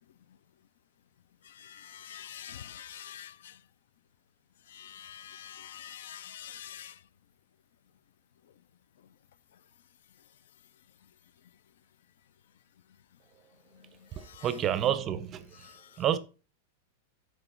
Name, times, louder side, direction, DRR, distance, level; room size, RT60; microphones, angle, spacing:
voice 1, 1.4-3.6 4.7-7.0 13.7-14.6 15.5-16.0, left 10 dB, 75° left, 0.3 m, -46 dB
voice 2, 14.4-15.4 16.0-16.2, right 10 dB, 25° right, 0.5 m, -28 dB
6.8 x 4.8 x 3.8 m
supercardioid pair, 155°, 0 cm